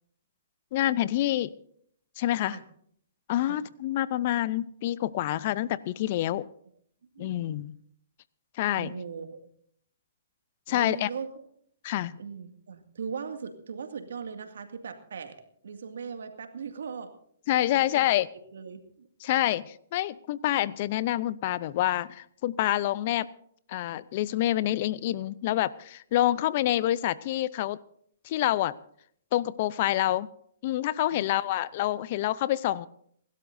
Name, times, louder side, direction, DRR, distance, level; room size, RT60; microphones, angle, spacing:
voice 1, 0.7-1.5 2.2-2.6 3.3-6.5 7.2-7.8 8.6-8.9 10.7-11.1 11.8-12.2 17.5-18.3 19.2-23.3 23.7-27.8 28.2-28.7 29.3-30.3 30.6-32.9, left 14 dB, 45° left, 19 dB, 0.6 m, -27 dB
voice 2, 8.8-9.4 10.7-11.3 12.2-15.4 15.6-17.1 17.7-18.2 18.5-19.1 31.1-31.4, right 6 dB, 75° right, 6 dB, 2.1 m, -39 dB
28.0 x 12.5 x 2.7 m, 0.64 s
hypercardioid pair, 130°, 0 cm